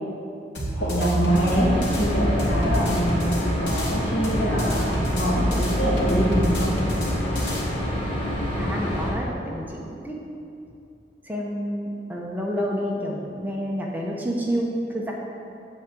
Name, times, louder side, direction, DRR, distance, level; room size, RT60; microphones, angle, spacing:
sound 1, 0.5-3.9 4.2-7.6, equal, 85° left, 2.1 m, -28 dB
voice 1, 0.8-1.7 2.0-6.8, equal, 65° left, -5 dB, 2.5 m, -24 dB
sound 2, 1.3-9.1, equal, 30° left, 1.7 m, -27 dB
voice 2, 8.5-10.2 11.2-15.1, equal, 10° right, -2 dB, 0.9 m, -29 dB
8.5 x 5.0 x 7.7 m, 2.6 s
head